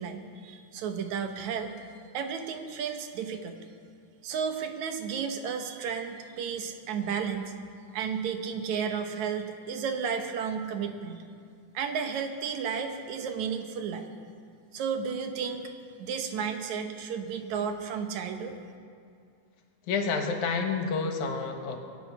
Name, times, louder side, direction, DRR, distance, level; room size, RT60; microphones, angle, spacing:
voice 1, 0.0-1.7 2.1-3.6 4.2-7.5 7.9-11.2 11.7-14.1 14.7-15.7 16.0-18.6, right 6 dB, 70° right, 6 dB, 2.3 m, -33 dB
voice 2, 19.9-21.8, left 4 dB, 75° left, 4 dB, 2.6 m, -29 dB
24.5 x 9.1 x 5.6 m, 2.3 s
omnidirectional pair, 3.5 m